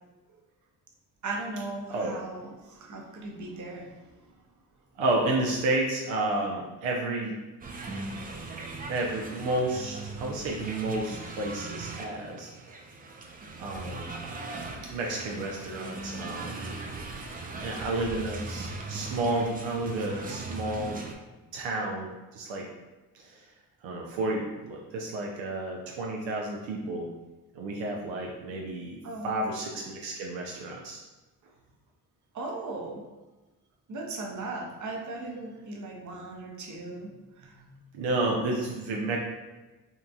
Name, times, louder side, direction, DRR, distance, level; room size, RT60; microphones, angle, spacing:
voice 1, 1.2-3.9 29.0-29.4 32.3-33.0 33.9-37.1 37.4-37.7, right 2 dB, 40° right, 0 dB, 0.7 m, -37 dB
voice 2, 5.0-7.3 8.9-12.5 13.6-14.2 14.9-16.8 17.6-21.0 21.5-22.7 23.1-23.4 23.8-27.1 27.6-31.0 37.9-39.2, right 2 dB, 75° right, -1 dB, 0.5 m, -31 dB
sound 1, 7.6-21.2, right 3 dB, 20° right, 0.3 m, -39 dB
2.8 x 2.4 x 2.3 m, 1.2 s
supercardioid pair, 45°, 45 cm